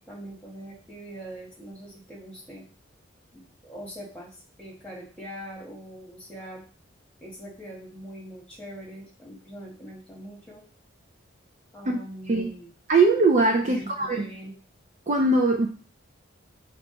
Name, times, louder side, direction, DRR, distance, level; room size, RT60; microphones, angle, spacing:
voice 1, 0.0-2.6 3.3-6.6 7.2-10.6 11.7-12.7 13.6-14.5, right 1 dB, 5° left, -3 dB, 1.4 m, -42 dB
voice 2, 12.9-14.3 15.1-15.7, right 3 dB, 35° right, 2 dB, 0.4 m, -21 dB
6.0 x 2.4 x 3.8 m, 0.40 s
head